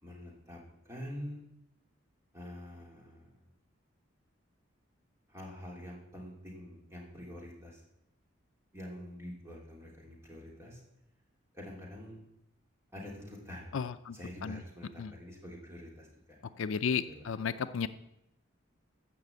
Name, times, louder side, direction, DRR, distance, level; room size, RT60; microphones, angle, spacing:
voice 1, 0.0-1.4 2.3-3.4 5.3-7.8 8.7-10.8 11.5-12.2 12.9-13.8 14.1-16.4 16.7-16.8 17.1-17.9, equal, 15° right, -2 dB, 3.1 m, -46 dB
voice 2, 13.7-14.2 14.4-14.6 15.0-15.1 16.6-17.9, left 6 dB, 70° left, 12 dB, 0.4 m, -33 dB
14.5 x 5.7 x 8.1 m, 0.84 s
head